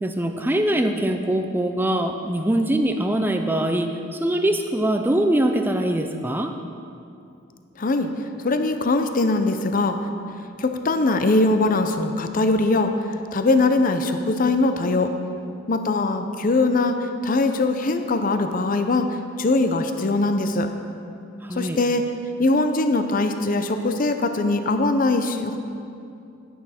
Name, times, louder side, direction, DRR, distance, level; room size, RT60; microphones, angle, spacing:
voice 1, 0.0-6.6 21.4-21.8, right 1 dB, 10° right, 6 dB, 0.4 m, -23 dB
voice 2, 7.8-8.1 8.4-10.0 10.6-12.9 13.3-15.1 15.7-17.0 17.2-19.1 19.4-20.7 21.6-22.0 22.4-25.6, left 2 dB, 45° left, 7 dB, 0.6 m, -21 dB
11.0 x 10.0 x 4.3 m, 2.6 s
head